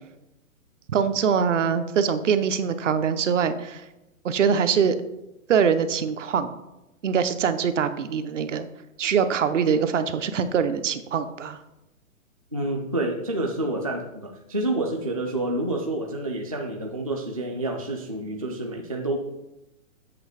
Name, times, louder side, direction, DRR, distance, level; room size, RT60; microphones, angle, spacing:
voice 1, 0.9-3.8 4.2-5.0 5.5-6.5 7.0-8.7 9.0-11.6, right 7 dB, 60° right, 10 dB, 0.8 m, -23 dB
voice 2, 12.5-19.2, right 1 dB, 30° right, 1 dB, 0.3 m, -28 dB
7.9 x 3.4 x 6.3 m, 0.92 s
hypercardioid pair, 160°, 42 cm